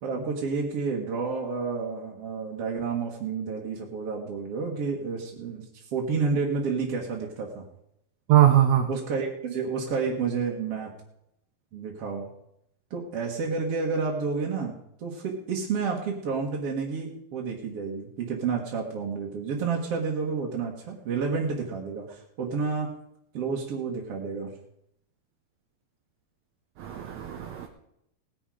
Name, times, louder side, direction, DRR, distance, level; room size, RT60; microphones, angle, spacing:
voice 1, 0.0-7.6 8.9-10.9 11.7-12.3 12.9-22.9 23.3-24.5, right 5 dB, 50° right, -2 dB, 2.1 m, -30 dB
voice 2, 8.3-8.9 26.8-27.7, right 12 dB, 80° right, 5 dB, 1.6 m, -21 dB
18.5 x 10.0 x 4.9 m, 0.79 s
omnidirectional pair, 4.4 m